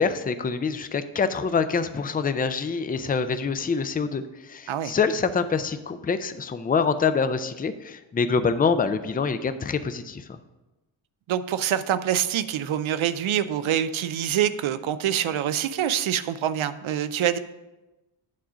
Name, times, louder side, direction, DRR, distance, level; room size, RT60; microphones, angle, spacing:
voice 1, 0.0-10.4, left 5 dB, 20° left, 11 dB, 0.3 m, -25 dB
voice 2, 11.3-17.4, right 10 dB, 90° right, 13 dB, 0.6 m, -25 dB
8.6 x 3.8 x 6.1 m, 1.0 s
wide cardioid pair, 145°, 47 cm